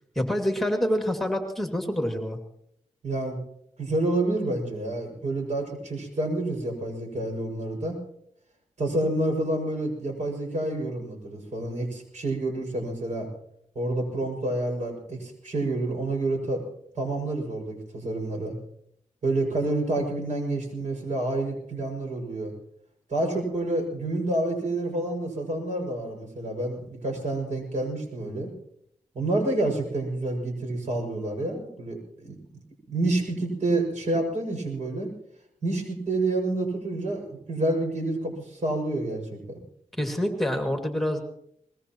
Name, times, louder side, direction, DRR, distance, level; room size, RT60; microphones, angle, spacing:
voice 1, 0.1-2.4 40.0-41.2, equal, ahead, 4 dB, 2.3 m, -26 dB
voice 2, 3.0-3.4 3.8-8.0 8.8-13.3 13.7-16.6 16.9-18.6 19.2-22.5 23.1-28.5 29.1-32.4 32.9-35.1 35.6-39.6, right 2 dB, 70° right, 2 dB, 6.2 m, -28 dB
22.5 x 20.5 x 3.0 m, 0.72 s
cardioid pair, 70°, 13 cm